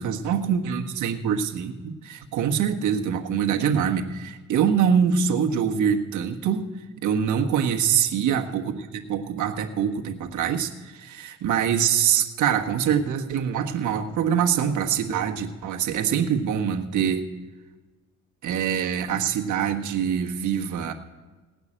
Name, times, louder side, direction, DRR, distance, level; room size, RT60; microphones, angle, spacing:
voice 1, 0.0-6.6 6.9-17.2 18.4-20.9, right 8 dB, 75° right, 2 dB, 1.4 m, -24 dB
18.0 x 6.0 x 10.0 m, 1.3 s
cardioid pair, 90°, 30 cm